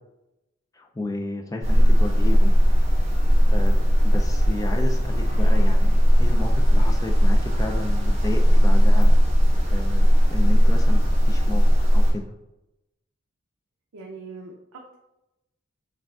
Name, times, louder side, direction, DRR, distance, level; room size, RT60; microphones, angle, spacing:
voice 1, 0.7-2.5 3.5-3.8 4.1-9.2 9.7-11.7 11.9-12.2, left 2 dB, 15° left, 3 dB, 0.3 m, -32 dB
sound 1, 1.6-12.1, equal, 30° right, 1.3 m, -17 dB
voice 2, 13.9-14.9, right 3 dB, 90° right, -1 dB, 0.5 m, -41 dB
5.9 x 2.4 x 2.4 m, 0.92 s
head